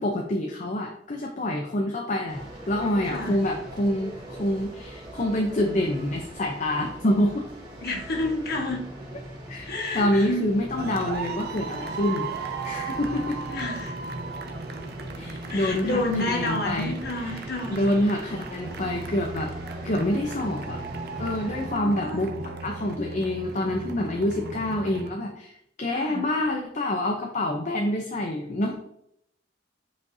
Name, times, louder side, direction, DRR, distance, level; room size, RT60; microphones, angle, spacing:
voice 1, 0.0-7.5 9.5-13.4 15.2-17.4 17.7-19.5 19.8-20.8 21.2-25.5 25.8-28.8, left 1 dB, 40° left, 2 dB, 0.7 m, -27 dB
sound 1, 2.3-21.7, right 1 dB, 25° right, 2.7 m, -41 dB
voice 2, 3.0-3.4 7.8-8.8 9.7-10.4 13.5-13.9 15.5-17.9 21.5-22.2 25.9-26.3, left 1 dB, 60° left, 1 dB, 1.5 m, -30 dB
sound 2, 10.8-25.1, right 4 dB, 60° right, 0.7 m, -36 dB
8.3 x 5.0 x 2.7 m, 0.76 s
head